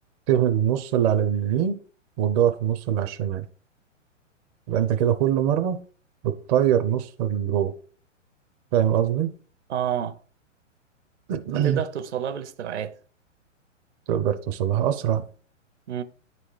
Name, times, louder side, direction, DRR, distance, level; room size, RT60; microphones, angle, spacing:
voice 1, 0.3-1.8 2.2-3.4 4.7-5.8 6.2-7.7 8.7-9.3 11.3-11.8 14.1-15.2, right 10 dB, 30° right, 0.5 m, -23 dB
voice 2, 9.7-10.2 11.5-13.0 15.9-16.0, right 9 dB, 60° right, 1.0 m, -29 dB
9.7 x 4.1 x 4.8 m
figure-of-eight pair, 115°, 38 cm